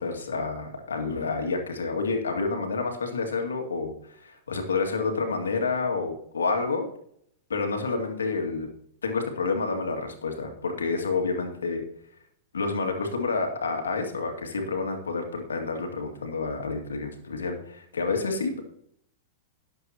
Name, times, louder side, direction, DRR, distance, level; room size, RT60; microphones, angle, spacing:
voice 1, 0.0-6.9 7.5-8.7 9.0-11.8 12.5-18.6, left 4 dB, 85° left, 4 dB, 2.3 m, -29 dB
18.0 x 7.8 x 3.0 m, 0.68 s
hypercardioid pair, 105°, 0 cm